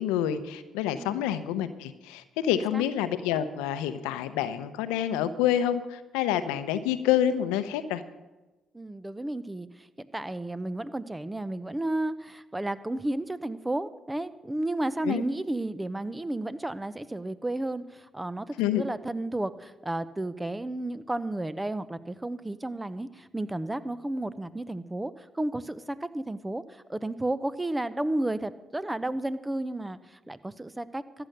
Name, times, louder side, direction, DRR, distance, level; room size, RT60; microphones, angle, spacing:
voice 1, 0.0-8.0 15.0-15.2 18.6-18.8, left 10 dB, 85° left, 12 dB, 0.8 m, -27 dB
voice 2, 8.7-31.0, right 1 dB, 15° right, 15 dB, 0.9 m, -32 dB
14.0 x 8.9 x 6.7 m, 1.1 s
hypercardioid pair, 55°, 0 cm